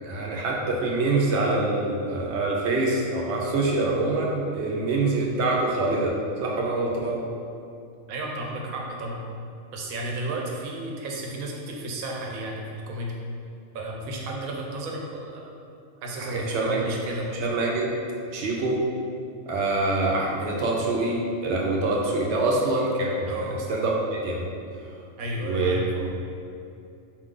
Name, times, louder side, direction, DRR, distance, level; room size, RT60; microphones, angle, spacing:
voice 1, 0.0-7.3 16.2-16.8 17.3-17.9 18.3-18.8 19.5-23.3 23.7-24.5 25.4-26.2, right 2 dB, 65° right, -2 dB, 0.8 m, -25 dB
voice 2, 8.1-9.2 9.7-13.2 13.7-15.5 16.0-17.3 23.3-23.6 25.2-26.1, right 1 dB, 85° right, 0 dB, 1.1 m, -33 dB
4.4 x 2.4 x 3.7 m, 2.5 s
omnidirectional pair, 1.4 m